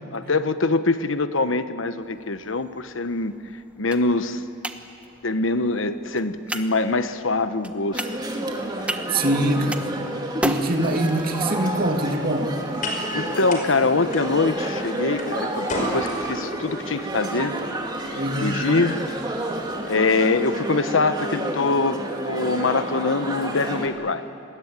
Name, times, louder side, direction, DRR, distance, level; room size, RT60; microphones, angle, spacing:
voice 1, 0.1-3.3 3.8-4.4 5.2-8.0 13.1-17.6 18.4-19.0 19.9-22.0 22.2-24.3, left 3 dB, 90° left, 11 dB, 1.1 m, -23 dB
sound 1, 2.0-19.9, right 1 dB, 5° right, 1.1 m, -39 dB
sound 2, 7.9-23.9, right 1 dB, 20° right, 2.7 m, -30 dB
voice 2, 9.1-9.9 10.4-12.6 18.1-18.6, right 1 dB, 50° right, 4 dB, 2.4 m, -23 dB
sound 3, 11.7-19.7, left 1 dB, 45° left, 5.6 m, -37 dB
29.0 x 20.5 x 8.9 m, 2.8 s
head